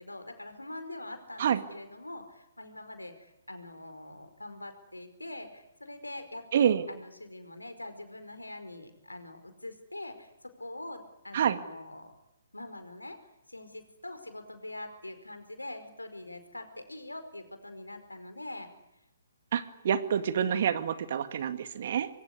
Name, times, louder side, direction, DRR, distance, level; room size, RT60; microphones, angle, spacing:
voice 1, 0.0-12.1 12.5-13.2 13.5-18.7, left 1 dB, 85° left, 8 dB, 5.1 m, -44 dB
voice 2, 6.5-6.9 11.3-11.6 19.5-22.1, right 8 dB, 45° right, 10 dB, 2.2 m, -27 dB
26.0 x 23.0 x 9.7 m, 0.93 s
figure-of-eight pair, 130°, 0 cm